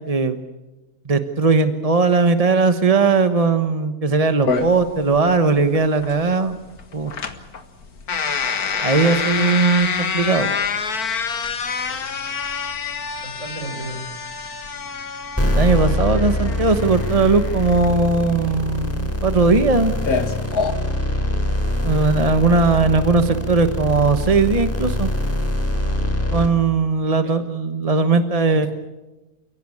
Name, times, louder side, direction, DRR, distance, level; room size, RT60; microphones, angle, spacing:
voice 1, 0.1-0.4 1.0-6.6 6.9-7.1 8.8-10.5 15.5-19.9 21.8-25.1 26.3-28.7, right 4 dB, 25° right, 8 dB, 1.1 m, -18 dB
sound 1, 4.5-20.7, left 5 dB, 70° left, 2.3 m, -27 dB
voice 2, 4.5-4.8 11.9-12.1 13.2-14.1 27.2-27.3 28.5-28.7, right 2 dB, 55° right, 5 dB, 5.4 m, -35 dB
sound 2, 15.4-26.5, left 1 dB, 10° left, 3.6 m, -23 dB
29.5 x 17.0 x 8.6 m, 1.1 s
omnidirectional pair, 1.6 m